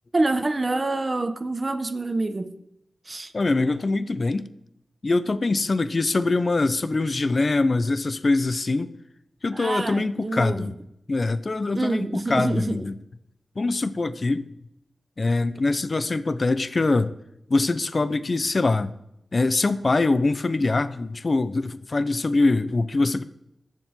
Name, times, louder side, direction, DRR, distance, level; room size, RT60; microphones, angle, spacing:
voice 1, 0.1-2.5 3.0-3.3 9.5-10.7 11.7-12.9, right 2 dB, 35° right, 1.2 m, -26 dB
voice 2, 3.3-4.5 5.0-8.9 9.4-10.7 11.1-13.0 13.6-14.5 15.2-17.1 17.5-18.9 19.3-23.2, left 3 dB, 50° left, 0.8 m, -23 dB
21.5 x 7.6 x 3.8 m
cardioid pair, 60°, 0 cm